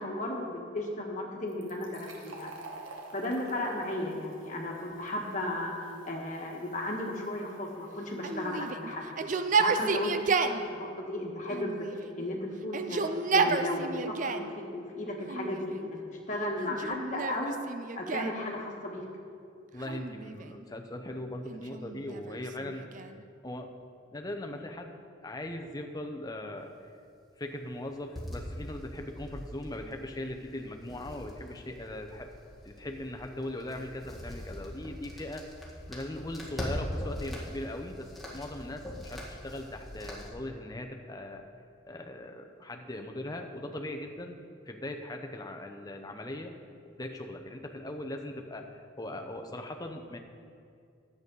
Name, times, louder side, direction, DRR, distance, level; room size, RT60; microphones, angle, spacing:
voice 1, 0.0-2.5 3.1-9.1 9.5-11.9 12.1-13.0 13.3-17.6 17.9-19.0, left 1 dB, 40° left, -1 dB, 1.5 m, -35 dB
Fill (with liquid), 1.5-8.8, right 2 dB, 80° right, 1.4 m, -51 dB
Yell, 8.2-10.6 11.5-12.2 12.6-14.5 15.2-15.9 16.6-18.4 19.8-20.6 21.5-23.2, right 4 dB, 40° right, 0.4 m, -31 dB
voice 2, 19.7-22.8 23.4-23.7 24.1-26.7 27.4-32.3 32.6-35.6 35.9-41.4 41.8-44.4 44.7-46.5 47.0-50.2, left 1 dB, 20° left, 4 dB, 0.7 m, -39 dB
sound 1, 28.1-40.3, equal, ahead, 1.7 m, -42 dB
11.0 x 8.1 x 5.4 m, 2.4 s
head